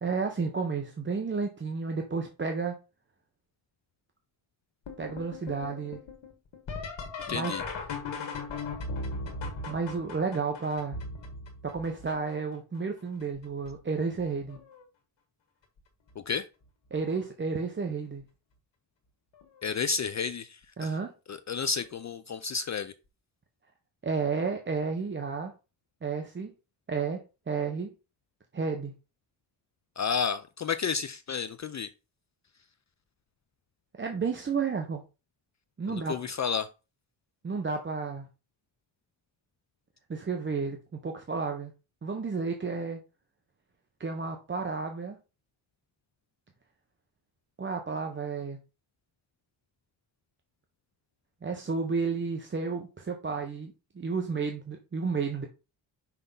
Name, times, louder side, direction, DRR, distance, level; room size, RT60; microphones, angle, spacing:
voice 1, 0.0-2.8 5.0-6.0 7.3-7.6 9.7-11.0 11.6-14.6 16.9-18.2 20.8-21.1 24.0-25.5 26.0-26.5 26.9-27.9 28.5-28.9 34.0-35.0 35.8-36.2 37.4-38.3 40.1-40.8 41.0-41.7 42.0-43.0 44.0-45.2 47.6-48.6 51.4-55.5, right 4 dB, 25° right, 0.7 m, -32 dB
sound 1, 4.9-12.5 13.2-13.7 14.2-14.8 16.1-16.2 16.9-17.2 19.4-19.5 21.8-21.9, left 3 dB, 70° left, 1.9 m, -39 dB
voice 2, 7.3-7.6 16.3-16.5 19.6-21.0 21.3-22.9 30.0-31.9 35.9-36.7, left 6 dB, 40° left, 0.4 m, -31 dB
5.8 x 3.5 x 5.4 m
wide cardioid pair, 145°, 46 cm